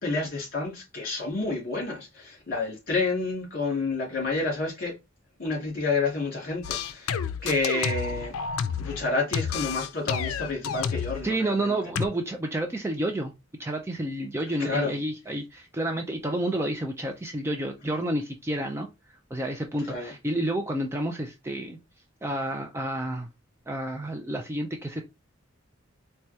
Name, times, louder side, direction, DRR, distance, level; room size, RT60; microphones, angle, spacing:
voice 1, 0.0-5.0 5.4-7.2 7.4-8.3 8.8-11.8 14.6-15.0 19.9-20.1, left 3 dB, 45° left, 2.1 m, -29 dB
sound 1, 6.6-9.0 9.3-11.2 11.9-12.1, left 7 dB, 85° left, 0.4 m, -30 dB
voice 2, 11.2-13.3 13.6-18.9 19.3-21.8 22.2-23.3 23.7-25.0, right 1 dB, 10° right, 0.3 m, -30 dB
4.4 x 2.2 x 2.7 m
head